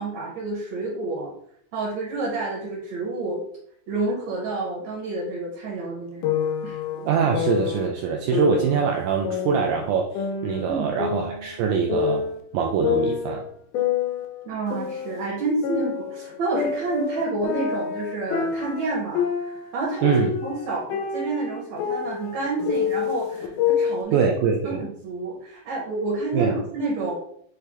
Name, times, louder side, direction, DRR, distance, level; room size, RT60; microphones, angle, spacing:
voice 1, 0.0-1.3 1.7-3.4 3.9-6.3 6.6-6.8 10.7-11.0 14.4-20.1 20.4-24.3 24.6-27.2, right 3 dB, 65° right, -4 dB, 1.9 m, -29 dB
sound 1, 6.2-7.9 8.3-9.9 10.1-12.4 12.8-15.3 15.6-19.7 20.0-24.0, left 7 dB, 85° left, 1.7 m, -27 dB
voice 2, 7.1-12.2 12.5-13.4 20.0-20.3 24.1-24.8 26.3-26.5, right 6 dB, 90° right, 1 dB, 1.7 m, -23 dB
6.2 x 2.2 x 3.4 m, 0.67 s
omnidirectional pair, 4.1 m